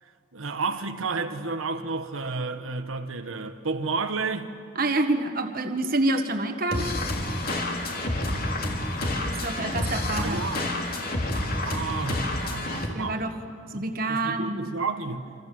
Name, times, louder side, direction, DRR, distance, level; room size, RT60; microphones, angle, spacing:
voice 1, 0.0-4.5 10.2-10.6 11.6-13.3 13.7-15.3, right 4 dB, 85° right, 1.3 m, -31 dB
voice 2, 4.7-6.9 9.2-10.4 12.9-13.3 13.7-14.6, right 2 dB, 45° right, 1.6 m, -27 dB
sound 1, 6.7-12.9, left 1 dB, 45° left, 2.8 m, -29 dB
27.5 x 26.0 x 7.7 m
head